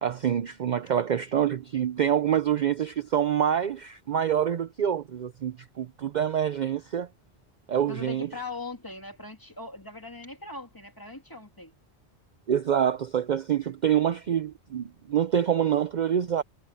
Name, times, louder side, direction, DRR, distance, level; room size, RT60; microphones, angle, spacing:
voice 1, 0.0-7.1 7.7-8.3 12.5-16.4, right 9 dB, 50° right, 0.6 m, -26 dB
voice 2, 7.9-11.7, left 3 dB, 20° left, 2.4 m, -40 dB
omnidirectional pair, 1.1 m